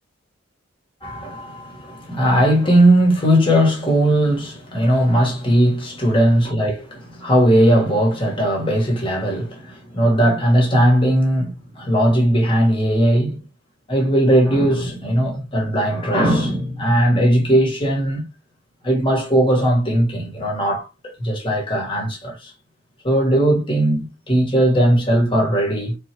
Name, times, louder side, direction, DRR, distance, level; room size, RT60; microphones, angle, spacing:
voice 1, 1.0-13.4 13.9-18.3 18.8-22.5 23.0-25.9, right 1 dB, 25° left, 1.7 m, -18 dB
4.4 x 3.2 x 3.0 m
head